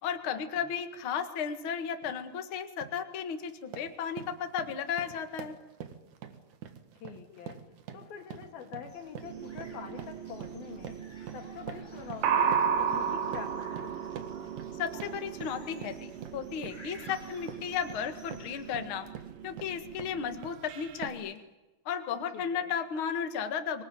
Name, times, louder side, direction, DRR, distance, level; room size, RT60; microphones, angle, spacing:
voice 1, 0.0-5.6 14.7-19.1 19.4-21.4 21.8-23.8, left 7 dB, 85° left, 7 dB, 1.1 m, -34 dB
sound 1, 2.0-2.2 2.6-3.0 3.4-20.6 21.0-21.4, right 8 dB, 55° right, 2.3 m, -46 dB
voice 2, 7.0-7.6 7.9-11.0 11.3-12.5 12.8-14.0 22.3-22.7, left 7 dB, 55° left, 4 dB, 4.1 m, -45 dB
sound 2, 8.9-18.9, left 1 dB, 5° left, 6.0 m, -56 dB
sound 3, 9.2-21.1, right 7 dB, 85° right, 4.2 m, -35 dB
25.5 x 20.0 x 9.4 m, 1.1 s
omnidirectional pair, 5.4 m